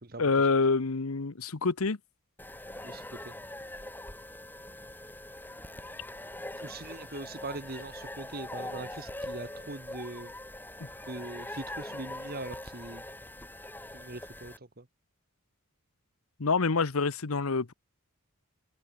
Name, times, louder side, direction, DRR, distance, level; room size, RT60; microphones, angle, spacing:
voice 1, 0.2-2.0 10.8-10.9 16.4-17.7, left 4 dB, 80° left, 1.0 m, -27 dB
sound 1, 2.4-14.6, left 1 dB, 10° left, 3.4 m, -42 dB
voice 2, 2.8-3.3 6.6-10.3 11.0-13.0 13.9-14.9, right 2 dB, 45° right, 1.6 m, -41 dB
head